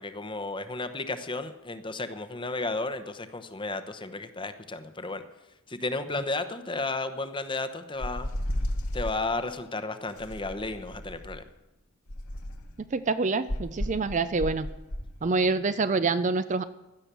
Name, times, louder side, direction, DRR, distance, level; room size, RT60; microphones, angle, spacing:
voice 1, 0.0-5.2 5.7-8.3 8.9-11.4, left 3 dB, 20° left, 10 dB, 0.9 m, -33 dB
sound 1, 8.0-9.2 10.2-11.4 12.1-12.8 13.5-15.1, left 1 dB, 85° left, 1.9 m, -33 dB
voice 2, 12.9-14.7 15.2-16.6, right 3 dB, 35° right, 13 dB, 0.4 m, -26 dB
16.0 x 11.5 x 6.9 m, 1.0 s
head